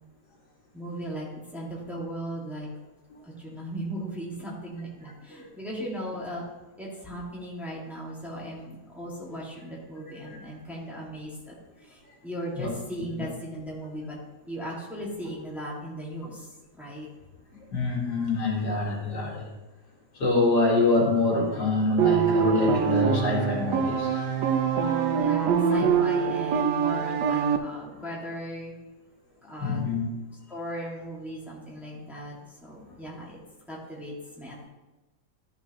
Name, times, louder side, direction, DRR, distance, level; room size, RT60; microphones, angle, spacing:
voice 1, 0.7-2.7 3.4-6.5 6.8-11.5 11.9-14.2 14.5-16.5 16.7-17.1 25.2-28.7 29.4-29.9 30.5-33.4 33.7-34.7, equal, ahead, -5 dB, 2.0 m, -37 dB
voice 2, 9.9-10.4 12.6-12.7 13.2-13.3 17.5-19.4 20.1-24.3 29.6-30.1, left 3 dB, 75° left, -2 dB, 2.5 m, -26 dB
sound 1, 22.0-27.6, right 7 dB, 90° right, 1.3 m, -24 dB
13.0 x 6.7 x 3.0 m, 1.1 s
omnidirectional pair, 1.8 m